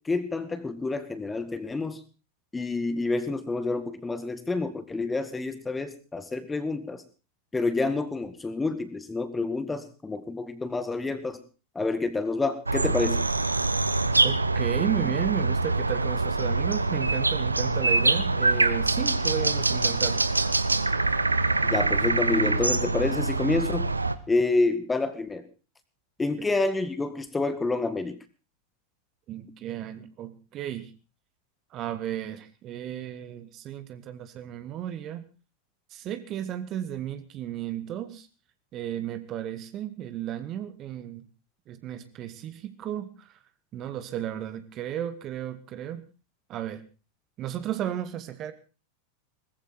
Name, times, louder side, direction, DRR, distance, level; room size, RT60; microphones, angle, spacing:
voice 1, 0.1-2.0 2.5-7.0 7.5-11.4 11.8-13.2 21.6-23.9 24.3-25.4 26.2-28.2, left 3 dB, 10° left, 11 dB, 1.9 m, -28 dB
sound 1, 12.7-24.2, right 3 dB, 80° right, 1.1 m, -24 dB
voice 2, 14.2-20.3 29.3-30.9 31.7-35.2 35.9-38.3 38.7-41.3 41.7-43.3 43.7-46.1 46.5-46.8 47.4-48.5, right 11 dB, 35° right, 11 dB, 1.9 m, -34 dB
20.0 x 15.0 x 4.4 m, 0.34 s
figure-of-eight pair, 90°, 0 cm